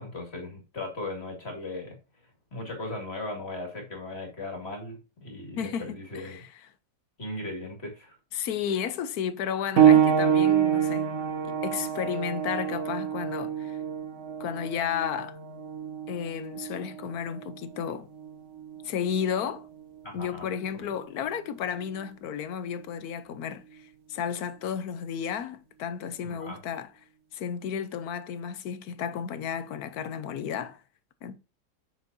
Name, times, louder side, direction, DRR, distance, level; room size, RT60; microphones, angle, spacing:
voice 1, 0.0-2.0 2.5-6.4 7.2-8.2 20.0-20.5 20.7-20.9 26.2-26.6, left 2 dB, 35° left, 2.3 m, -37 dB
voice 2, 5.6-6.6 8.3-11.1 11.4-13.8 14.4-15.4 16.1-18.1 18.8-19.7 20.1-26.9 27.3-30.8 31.2-31.4, left 8 dB, 65° left, 1.1 m, -33 dB
sound 1, 9.8-20.0 20.9-21.1 21.8-21.9, right 9 dB, 55° right, 0.9 m, -26 dB
7.4 x 6.1 x 2.7 m
omnidirectional pair, 1.9 m